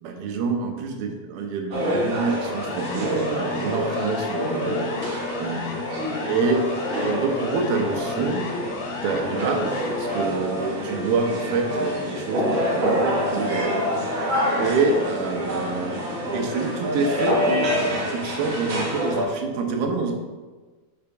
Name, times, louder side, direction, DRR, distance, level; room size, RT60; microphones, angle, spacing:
voice 1, 0.0-5.1 5.4-6.6 6.9-8.5 9.0-14.1 14.6-16.0 16.3-17.8 18.1-20.1, right 4 dB, 85° right, 3 dB, 2.7 m, -27 dB
sound 1, 1.7-19.2, equal, 60° right, 1.2 m, -27 dB
Siren, 2.3-10.3, left 4 dB, 85° left, 2.6 m, -34 dB
6.9 x 5.8 x 3.4 m, 1.3 s
omnidirectional pair, 4.3 m